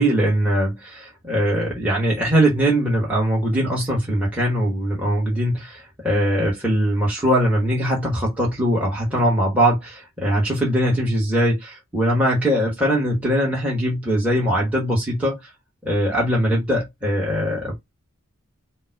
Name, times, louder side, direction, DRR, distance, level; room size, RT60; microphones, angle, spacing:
voice 1, 0.0-15.4 15.8-17.8, equal, 5° right, 1.2 m, -21 dB
5.2 x 2.2 x 4.5 m
head